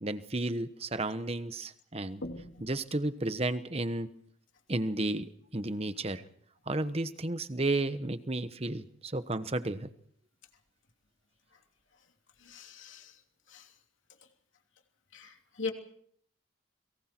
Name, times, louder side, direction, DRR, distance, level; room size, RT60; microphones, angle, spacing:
voice 1, 0.0-2.2 2.6-4.1 4.7-6.2 6.7-9.9, right 2 dB, 30° right, 11 dB, 1.1 m, -33 dB
voice 2, 2.2-2.7 12.4-13.2 13.5-13.7 15.1-15.7, left 4 dB, 80° left, 3 dB, 3.0 m, -40 dB
29.5 x 23.0 x 4.5 m, 0.62 s
head